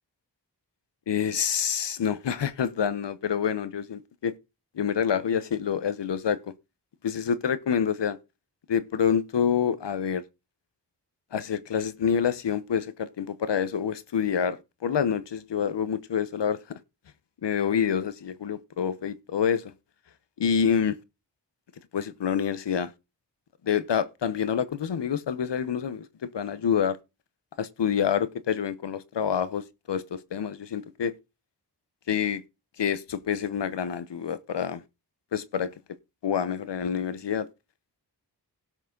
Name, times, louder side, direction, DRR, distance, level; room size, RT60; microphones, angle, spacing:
voice 1, 1.1-4.3 4.7-6.4 7.0-8.2 8.7-10.2 11.3-16.6 17.4-19.7 20.4-21.0 21.9-22.9 23.6-27.0 27.6-31.1 32.1-32.4 32.8-34.8 35.3-35.7 36.2-37.5, left 7 dB, 90° left, 1.0 m, -27 dB
17.0 x 6.1 x 3.8 m
wide cardioid pair, 65°, 41 cm